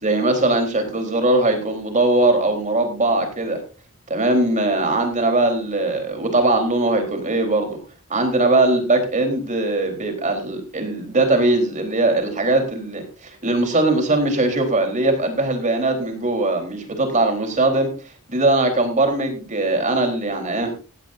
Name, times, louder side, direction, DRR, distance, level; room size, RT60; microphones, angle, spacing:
voice 1, 0.0-3.6 4.1-7.8 8.1-17.9 18.3-20.7, right 2 dB, 35° right, 5 dB, 3.9 m, -20 dB
16.0 x 16.0 x 2.7 m, 0.33 s
head